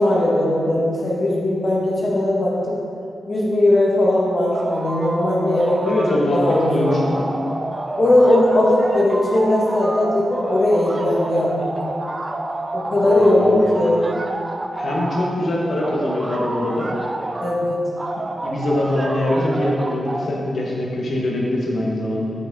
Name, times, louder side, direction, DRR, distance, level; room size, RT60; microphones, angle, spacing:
voice 1, 0.0-2.8 3.3-6.0 6.3-7.2 8.0-11.8 12.7-14.0 17.4-17.9, left 1 dB, 50° left, -4 dB, 1.9 m, -19 dB
sound 1, 4.5-6.2 6.4-15.4 15.8-17.6 18.0-20.3, right 2 dB, 35° right, 0.6 m, -29 dB
voice 2, 5.8-7.0 13.0-13.7 14.7-16.9 18.4-22.3, left 1 dB, 70° left, -3 dB, 1.5 m, -22 dB
8.1 x 6.8 x 3.9 m, 2.6 s
cardioid pair, 60°, 0 cm